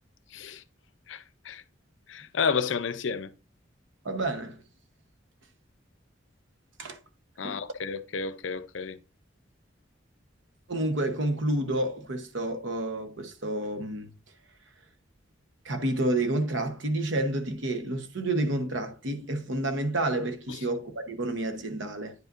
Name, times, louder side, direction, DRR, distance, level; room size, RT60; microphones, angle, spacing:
voice 1, 0.3-0.6 1.1-1.6 2.1-3.3 7.4-9.0 20.5-20.6, left 5 dB, 75° left, 0.5 m, -31 dB
voice 2, 4.0-4.6 6.8-7.0 7.4-7.6 10.7-14.1 15.6-22.1, right 1 dB, 75° right, 1.0 m, -29 dB
9.4 x 5.3 x 2.5 m
head